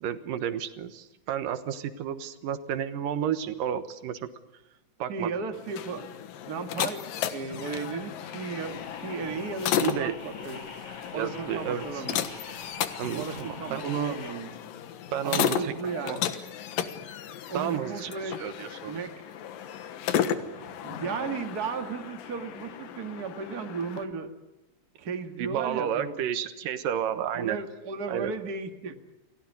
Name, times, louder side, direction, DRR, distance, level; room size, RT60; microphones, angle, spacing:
voice 1, 0.0-4.3 5.0-5.3 9.8-10.2 11.1-12.0 13.0-14.2 15.1-15.7 16.1-16.2 17.5-18.9 20.4-20.8 25.4-27.6 28.1-28.3, right 9 dB, 80° right, 10 dB, 3.0 m, -31 dB
voice 2, 5.1-6.1 6.5-7.0 7.3-10.6 11.1-12.3 13.1-14.5 15.2-16.2 17.5-18.4 18.9-19.2 20.8-24.3 25.0-26.2 27.3-29.0, right 5 dB, 35° right, 6 dB, 2.0 m, -35 dB
sound 1, 5.5-24.0, left 9 dB, 90° left, 3.1 m, -34 dB
sound 2, 8.6-14.3, left 3 dB, 45° left, 4.4 m, -45 dB
29.0 x 19.0 x 9.6 m, 0.96 s
omnidirectional pair, 3.8 m